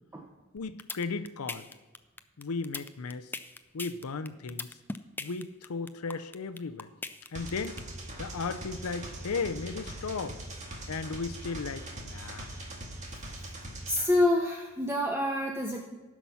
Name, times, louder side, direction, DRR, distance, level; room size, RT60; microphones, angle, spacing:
voice 1, 0.5-1.7 2.4-3.3 3.7-4.7 5.2-6.9 7.3-7.8 8.2-10.4 10.9-12.5, left 4 dB, 90° left, 11 dB, 0.6 m, -35 dB
sound 1, 0.6-7.8, left 3 dB, 10° left, 0.3 m, -38 dB
sound 2, 7.3-14.0, right 1 dB, 35° right, 1.9 m, -41 dB
voice 2, 13.9-15.8, left 1 dB, 10° right, 1 dB, 0.7 m, -27 dB
14.5 x 6.0 x 5.6 m, 1.2 s
head